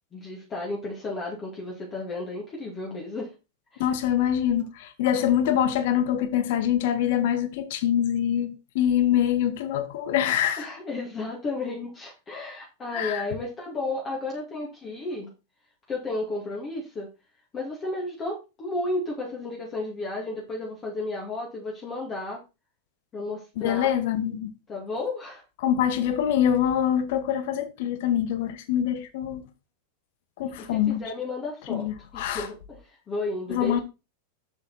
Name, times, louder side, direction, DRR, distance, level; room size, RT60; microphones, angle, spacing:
voice 1, 0.1-3.3 3.7-3.8 10.6-15.3 15.9-17.1 17.5-22.4 23.1-23.9 24.7-25.4 30.6-31.9 32.1-33.8, left 2 dB, 25° left, 2.3 m, -33 dB
voice 2, 3.8-10.7 12.9-13.3 23.6-24.5 25.6-29.4 30.4-31.1 31.7-32.5 33.5-33.8, left 10 dB, 50° left, 1.2 m, -25 dB
7.6 x 6.9 x 4.1 m
figure-of-eight pair, 90°, 0 cm